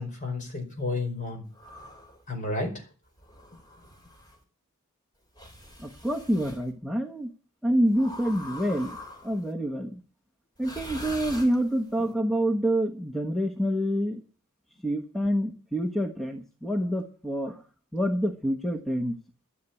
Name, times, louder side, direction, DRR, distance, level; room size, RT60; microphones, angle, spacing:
voice 1, 0.0-1.4 2.3-2.8, left 3 dB, 35° left, 3 dB, 4.9 m, -31 dB
sound 1, 1.5-2.2 3.2-4.4 5.3-6.6 7.9-9.5 10.6-12.0, left 1 dB, 20° left, 3.5 m, -43 dB
voice 2, 5.8-7.3 7.6-8.9 9.2-10.0 10.6-14.2 14.8-17.6 17.9-19.1, equal, ahead, 4 dB, 1.1 m, -27 dB
13.0 x 8.3 x 8.4 m, 0.37 s
head